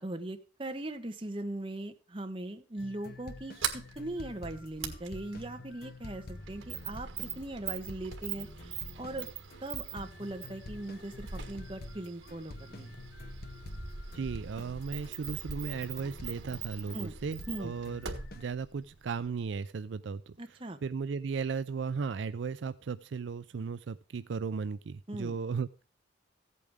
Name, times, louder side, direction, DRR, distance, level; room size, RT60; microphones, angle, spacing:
voice 1, 0.0-9.3 9.6-13.0 16.9-17.1 17.5-17.7 20.4-20.8 25.1-25.4, right 1 dB, 25° right, 6 dB, 1.1 m, -40 dB
sound 1, 2.8-17.0 17.4-18.5, left 2 dB, 50° left, 0.9 m, -48 dB
Sliding door, 3.3-19.7, right 7 dB, 85° right, 1.6 m, -42 dB
voice 2, 14.1-20.3 20.8-25.8, right 5 dB, 65° right, 13 dB, 0.4 m, -36 dB
15.0 x 8.5 x 3.5 m, 0.37 s
head